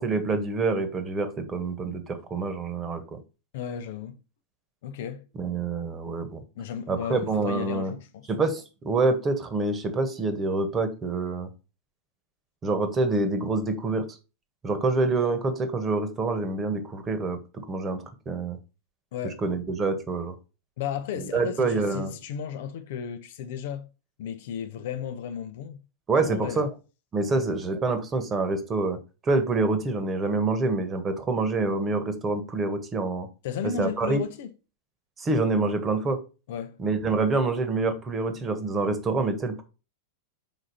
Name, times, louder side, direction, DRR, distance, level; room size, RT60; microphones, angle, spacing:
voice 1, 0.0-3.2 5.4-6.4 6.9-7.9 8.3-11.5 12.6-14.1 14.6-18.6 19.2-20.3 21.2-22.1 26.1-26.7 27.1-29.0 29.2-33.3 33.8-34.2 35.2-36.2 36.8-39.6, right 3 dB, 20° right, 1.4 m, -26 dB
voice 2, 3.5-4.1 4.8-5.2 6.6-8.3 19.1-19.4 20.8-23.9 24.2-25.8 26.2-26.7 27.3-27.5 33.4-34.5 36.5-36.8, left 8 dB, 55° left, 0.8 m, -34 dB
6.3 x 4.9 x 4.2 m
figure-of-eight pair, 90°, 0 cm